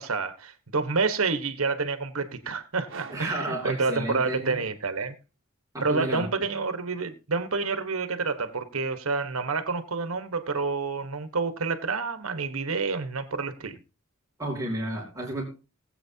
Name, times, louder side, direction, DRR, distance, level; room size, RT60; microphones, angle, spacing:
voice 1, 0.0-5.2 5.8-13.8, right 4 dB, 85° right, 1.3 m, -28 dB
sound 1, 2.9-4.6, right 4 dB, 65° right, 1.4 m, -46 dB
voice 2, 3.1-4.6 5.7-6.3 14.4-15.4, right 1 dB, 15° right, 2.9 m, -32 dB
19.5 x 8.0 x 2.8 m
head